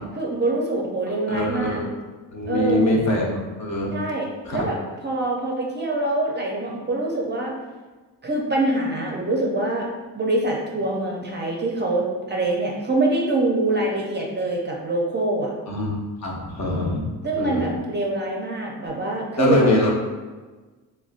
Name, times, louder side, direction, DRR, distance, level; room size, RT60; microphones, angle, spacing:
voice 1, 0.2-1.8 2.5-2.8 3.9-7.5 8.2-9.9 10.1-15.5 17.2-19.6, right 2 dB, 30° right, -1 dB, 0.5 m, -24 dB
voice 2, 1.3-1.9 2.3-3.9 4.4-4.6 15.7-17.1 17.4-17.7 19.4-19.9, left 1 dB, 45° left, -2 dB, 0.8 m, -23 dB
3.5 x 2.2 x 2.4 m, 1.3 s
cardioid pair, 75°, 39 cm